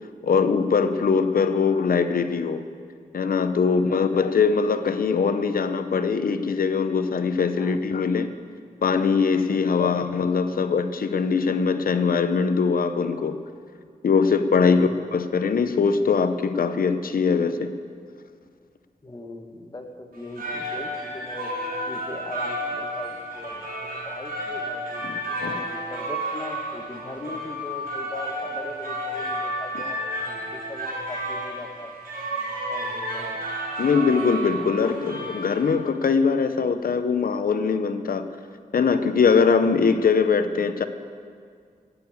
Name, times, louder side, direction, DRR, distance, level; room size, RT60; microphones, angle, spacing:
voice 1, 0.2-2.7 3.1-8.3 8.8-13.4 14.0-17.7 25.0-25.1 25.4-25.6 33.8-38.2 38.7-40.8, left 5 dB, 75° left, 9 dB, 0.8 m, -22 dB
voice 2, 3.6-4.2 7.5-7.8 9.8-10.0 14.6-15.0 19.0-21.5 21.9-32.0 32.7-33.5 34.3-35.0, left 2 dB, 25° left, 3 dB, 1.4 m, -40 dB
sound 1, 20.1-36.0, right 1 dB, 85° right, 4.3 m, -32 dB
17.5 x 6.9 x 8.5 m, 2.1 s
wide cardioid pair, 95°, 15 cm